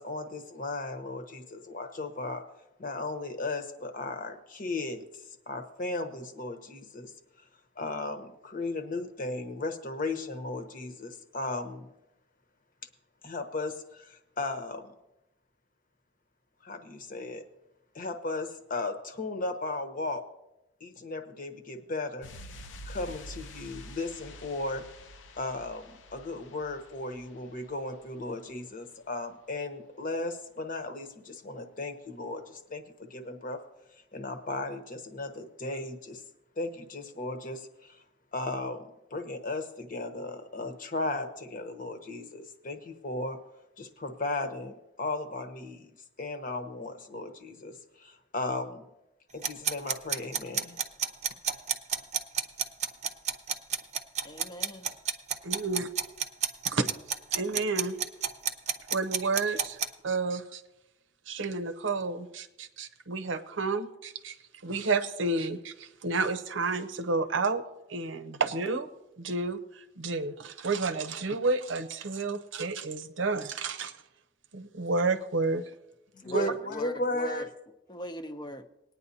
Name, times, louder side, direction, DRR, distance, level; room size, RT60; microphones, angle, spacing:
voice 1, 0.0-2.4 2.8-7.1 7.8-11.9 13.2-14.9 16.6-17.4 17.9-20.2 20.8-22.3 22.8-24.8 25.3-33.6 34.1-36.2 36.6-38.0 38.3-43.4 43.8-45.9 46.2-48.8 49.3-50.8 76.2-77.4, left 2 dB, 50° left, 6 dB, 1.0 m, -36 dB
sound 1, 22.2-28.7 29.0-29.1, left 1 dB, 75° left, 0.7 m, -48 dB
sound 2, 49.4-59.9, right 7 dB, 35° right, 0.6 m, -30 dB
voice 2, 54.2-54.9 76.2-77.5 77.9-78.7, equal, 25° left, 9 dB, 0.6 m, -39 dB
voice 3, 55.4-55.9 56.7-56.9 57.3-58.0 58.9-60.6 61.3-64.4 64.6-67.6 67.9-68.9 69.2-73.9 74.5-75.6 76.3-76.4, right 3 dB, 80° right, 8 dB, 0.7 m, -30 dB
19.5 x 9.4 x 2.7 m, 0.92 s
head